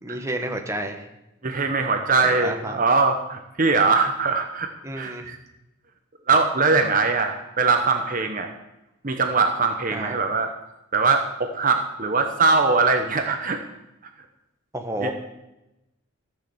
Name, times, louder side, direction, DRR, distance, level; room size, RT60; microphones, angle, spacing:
voice 1, 0.0-1.1 2.2-2.8 4.8-5.2 9.9-10.1 14.7-15.1, right 1 dB, 15° right, 3 dB, 1.3 m, -30 dB
voice 2, 1.4-4.7 5.0-5.4 6.3-8.5 9.0-10.5 10.9-13.6 15.0-15.1, right 4 dB, 40° right, 5 dB, 0.9 m, -21 dB
14.0 x 6.6 x 7.8 m, 0.93 s
head